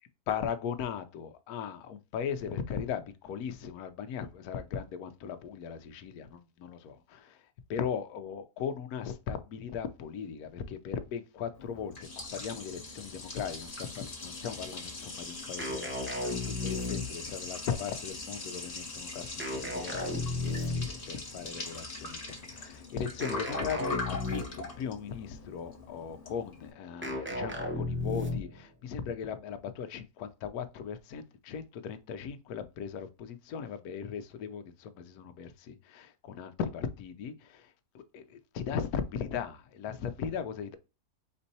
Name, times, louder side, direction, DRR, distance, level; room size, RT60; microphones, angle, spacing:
voice 1, 0.3-7.4 7.7-40.8, left 7 dB, 70° left, 1.1 m, -38 dB
Liquid, 11.5-26.7, left 3 dB, 30° left, 1.0 m, -42 dB
sound 1, 15.6-17.4 19.4-21.1 23.2-24.7 27.0-28.6, left 2 dB, 20° right, 0.3 m, -34 dB
4.4 x 4.2 x 2.7 m
omnidirectional pair, 1.8 m